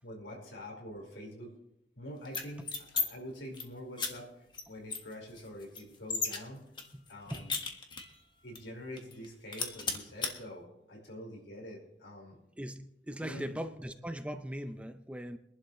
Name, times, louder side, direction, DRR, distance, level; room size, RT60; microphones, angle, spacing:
voice 1, 0.0-1.5 2.0-4.3 4.7-6.7 7.1-7.6 8.4-12.4 13.2-13.6, equal, 80° left, 5.2 m, -45 dB
sound 1, 2.2-3.0 3.4-3.6 4.0-4.1 4.5-4.6 4.9-6.4 6.8-8.2 8.5-8.6 9.0-9.2 9.5-10.3, left 5 dB, 25° left, 1.6 m, -35 dB
voice 2, 6.9-7.5 12.6-15.4, equal, 5° right, 0.6 m, -40 dB
24.0 x 11.5 x 3.2 m
head